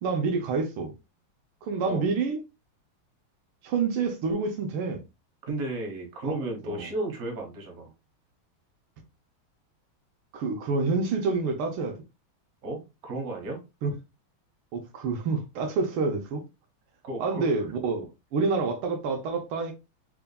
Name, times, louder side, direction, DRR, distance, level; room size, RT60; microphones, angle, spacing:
voice 1, 0.0-0.9 1.6-2.4 3.6-5.0 6.3-6.4 6.7-6.9 10.3-12.0 13.8-13.9 14.7-16.4 17.2-19.7, right 4 dB, 85° right, 1.6 m, -28 dB
voice 2, 5.4-7.9 12.6-13.6 17.0-17.5, right 2 dB, 50° right, 1.5 m, -33 dB
3.8 x 3.5 x 2.2 m
omnidirectional pair, 2.3 m